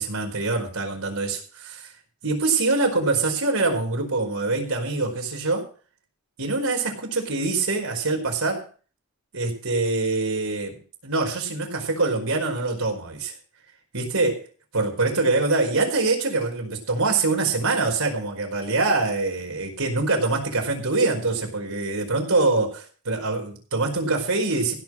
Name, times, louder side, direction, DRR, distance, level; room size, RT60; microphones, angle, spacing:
voice 1, 0.0-1.9 2.2-5.7 6.4-8.7 9.3-13.3 13.9-14.5 14.7-24.7, right 3 dB, 80° right, 1 dB, 4.8 m, -24 dB
16.0 x 6.3 x 7.6 m, 0.39 s
head